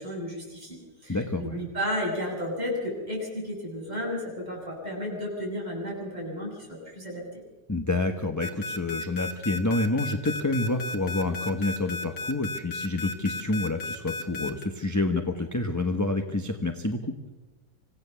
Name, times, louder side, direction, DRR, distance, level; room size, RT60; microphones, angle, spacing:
voice 1, 0.0-7.2, left 1 dB, 25° right, -3 dB, 7.5 m, -33 dB
voice 2, 1.1-1.6 7.7-17.1, left 2 dB, 15° left, 6 dB, 0.9 m, -28 dB
sound 1, 8.4-14.7, left 2 dB, 80° left, 2.4 m, -34 dB
26.5 x 16.5 x 7.0 m, 1.1 s
omnidirectional pair, 1.8 m